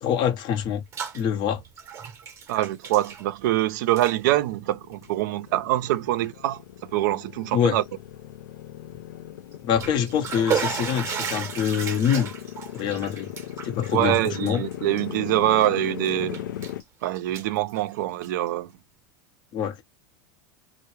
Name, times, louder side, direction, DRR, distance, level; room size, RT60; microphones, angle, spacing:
voice 1, 0.0-0.8 1.1-1.6 7.5-7.8 9.6-12.3 12.7-13.3 13.6-14.6 19.5-19.8, left 8 dB, 50° left, 0.7 m, -25 dB
Bathtub (filling or washing), 0.6-1.2 1.5-3.6 3.9-4.2 4.9-5.1 5.7-5.8 6.2-6.3 9.5-15.6 16.0-16.8 17.1-18.5, right 7 dB, 30° right, 0.7 m, -34 dB
voice 2, 2.5-6.6 6.9-7.8 13.9-16.4 17.0-18.7, right 14 dB, 75° right, 0.4 m, -24 dB
Motorcycle, 4.2-16.8, left 12 dB, 90° left, 0.4 m, -38 dB
2.2 x 2.0 x 3.0 m
hypercardioid pair, 105°, 10 cm